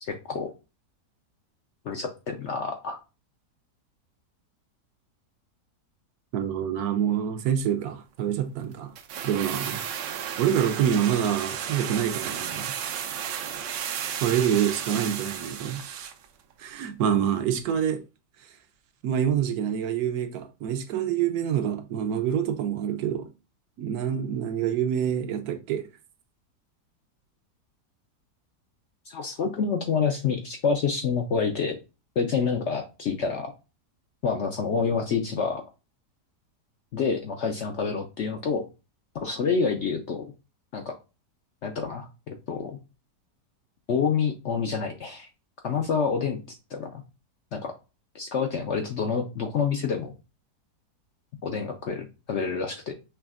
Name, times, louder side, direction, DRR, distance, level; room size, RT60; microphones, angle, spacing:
voice 1, 0.0-0.5 1.8-3.0 29.1-31.7 32.2-33.5 34.2-35.6 36.9-38.7 39.1-40.3 40.7-40.9 41.6-42.8 43.9-45.3 45.6-47.0 47.5-47.7 48.1-50.1 51.4-52.9, left 5 dB, 70° left, 0.7 m, -28 dB
voice 2, 6.3-8.9 9.2-9.9 10.1-12.7 14.2-15.8 16.6-18.0 19.0-23.3 23.8-25.9, right 9 dB, 70° right, 1.0 m, -26 dB
sound 1, 9.0-16.3 16.5-16.6, right 8 dB, 85° right, 1.3 m, -33 dB
6.0 x 3.1 x 2.4 m
omnidirectional pair, 1.8 m